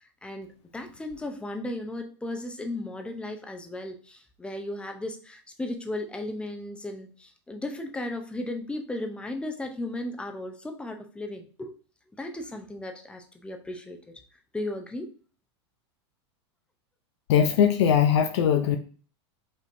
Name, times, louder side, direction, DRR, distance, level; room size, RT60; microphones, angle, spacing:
voice 1, 0.0-11.8 12.2-14.0 14.5-15.1, left 1 dB, 5° left, 4 dB, 0.6 m, -35 dB
voice 2, 17.3-18.8, left 8 dB, 70° left, 7 dB, 0.5 m, -20 dB
5.3 x 3.1 x 2.6 m, 0.39 s
supercardioid pair, 125°, 15 cm